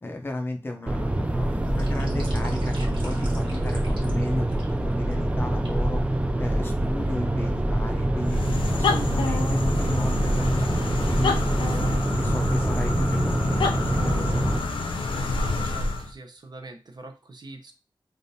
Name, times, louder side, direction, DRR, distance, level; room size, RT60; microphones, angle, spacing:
voice 1, 0.0-2.8 3.0-6.0 6.4-8.4 8.7-11.4 12.2-14.5, left 2 dB, 25° left, 4 dB, 0.6 m, -35 dB
sound 1, 0.9-14.6, right 1 dB, 15° right, 0.3 m, -25 dB
sound 2, 1.6-5.1 5.6-5.8 6.5-7.3 7.8-10.7 11.0-11.1 11.6-11.7 12.1-12.4 13.2-13.7 14.2-14.5 14.8-15.4 15.7-15.8, right 1 dB, 75° right, 1.3 m, -47 dB
sound 3, 8.2-16.1, left 3 dB, 80° left, 0.5 m, -28 dB
voice 2, 15.6-17.7, right 2 dB, 55° right, 6 dB, 0.7 m, -43 dB
3.4 x 2.5 x 2.7 m, 0.32 s
wide cardioid pair, 115°, 9 cm